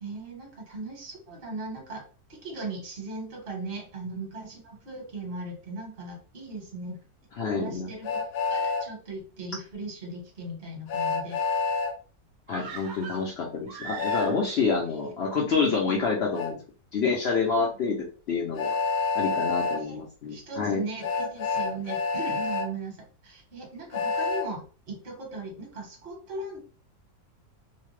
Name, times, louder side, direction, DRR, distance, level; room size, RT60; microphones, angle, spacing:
voice 1, 0.0-2.0 2.3-7.0 7.5-8.2 8.5-11.4 14.8-15.1 15.4-16.0 17.4-17.7 19.7-26.6, right 2 dB, 40° right, 0 dB, 1.1 m, -38 dB
voice 2, 7.4-7.9 12.5-16.6 16.9-18.0 18.3-18.8 19.1-20.8, left 4 dB, 60° left, -1 dB, 0.7 m, -27 dB
Train, 8.0-8.8 10.9-11.9 14.0-14.3 16.4-16.5 18.6-19.8 21.0-22.7 23.9-24.5, left 4 dB, 85° left, 1.2 m, -27 dB
sound 1, 12.5-14.7 15.0-15.1, right 5 dB, 75° right, 1.0 m, -41 dB
2.8 x 2.1 x 3.1 m, 0.36 s
omnidirectional pair, 1.6 m